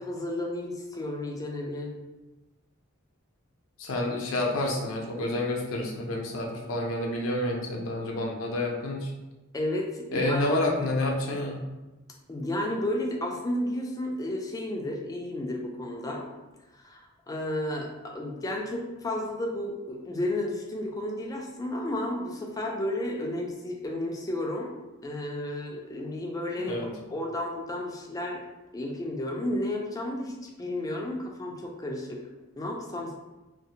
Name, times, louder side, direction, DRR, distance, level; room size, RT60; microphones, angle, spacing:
voice 1, 0.0-2.0 9.5-10.6 12.3-16.3 16.8-24.7 25.0-26.8 27.1-28.4 28.7-30.3 30.6-32.2 32.6-33.2, left 1 dB, 15° left, 0 dB, 0.3 m, -32 dB
voice 2, 3.8-9.1 10.1-11.6 26.6-26.9, left 1 dB, 75° left, 0 dB, 0.5 m, -29 dB
2.5 x 2.0 x 2.7 m, 1.1 s
head